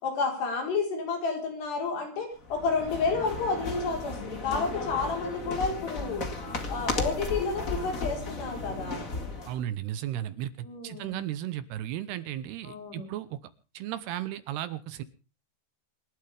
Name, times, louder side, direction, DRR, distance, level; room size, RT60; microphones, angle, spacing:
voice 1, 0.0-6.2 6.7-9.0 10.6-11.2 12.6-13.0, left 4 dB, 65° left, 2 dB, 6.4 m, -30 dB
sound 1, 2.4-9.6, left 3 dB, 40° left, 1.2 m, -35 dB
voice 2, 9.5-13.4 13.7-15.0, right 12 dB, 75° right, 14 dB, 2.6 m, -35 dB
27.0 x 12.0 x 3.5 m, 0.35 s
omnidirectional pair, 5.2 m